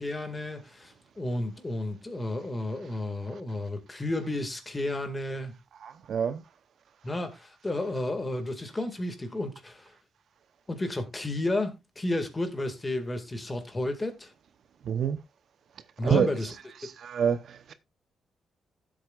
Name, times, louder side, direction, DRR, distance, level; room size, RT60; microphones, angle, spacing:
voice 1, 0.0-5.5 7.0-9.9 10.7-14.3 16.0-16.5, left 1 dB, 15° left, 1.9 m, -32 dB
voice 2, 5.8-6.4 14.9-15.2 16.0-16.3 16.8-17.7, right 8 dB, 60° right, 0.8 m, -27 dB
15.5 x 7.8 x 2.4 m
cardioid pair, 140°, 0 cm